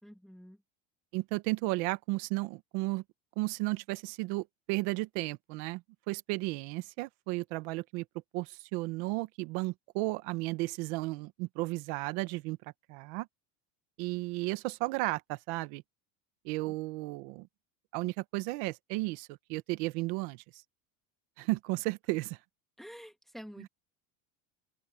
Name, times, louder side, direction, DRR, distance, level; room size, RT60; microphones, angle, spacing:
voice 1, 0.0-0.6 16.7-16.8 22.8-23.7, equal, ahead, 1.6 m, -48 dB
voice 2, 1.1-3.0 3.4-8.0 8.3-12.6 12.9-13.3 14.0-15.8 16.4-17.5 17.9-20.4 21.4-22.4, right 22 dB, 60° right, 1.2 m, -34 dB
open air
cardioid pair, 175°, 39 cm